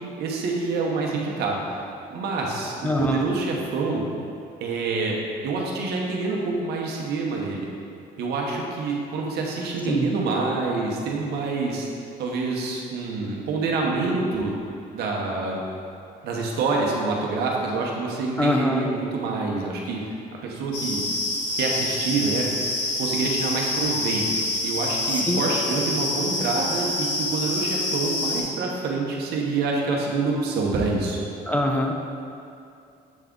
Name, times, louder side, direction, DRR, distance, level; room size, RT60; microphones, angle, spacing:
voice 1, 0.2-1.8 2.1-4.0 4.6-5.2 5.4-7.7 8.2-11.8 12.2-14.5 14.9-15.6 16.2-20.2 20.4-21.0 21.5-22.6 23.0-31.2, right 3 dB, 75° right, -1 dB, 1.0 m, -26 dB
voice 2, 2.8-3.3 9.9-10.1 18.4-18.9 25.2-25.4 31.5-31.9, left 1 dB, 10° left, 2 dB, 0.4 m, -23 dB
sound 1, 20.7-28.4, left 2 dB, 85° left, 1.3 m, -27 dB
7.4 x 3.5 x 3.7 m, 2.5 s
cardioid pair, 110°, 17 cm